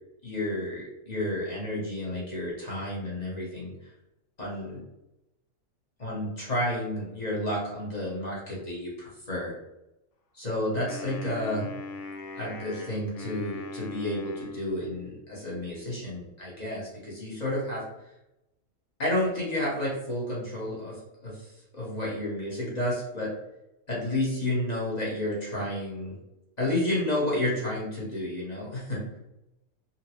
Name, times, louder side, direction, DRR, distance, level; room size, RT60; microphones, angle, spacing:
voice 1, 0.2-3.7 4.4-4.8 6.0-9.5 10.3-11.7 12.4-17.8 19.0-21.5 21.7-23.3 23.9-26.1 26.6-29.0, left 1 dB, 35° left, -5 dB, 1.0 m, -31 dB
Wind instrument woodwind instrument, 10.8-15.3, left 3 dB, 70° left, 0.5 m, -41 dB
4.0 x 2.2 x 2.9 m, 0.89 s
omnidirectional pair, 1.5 m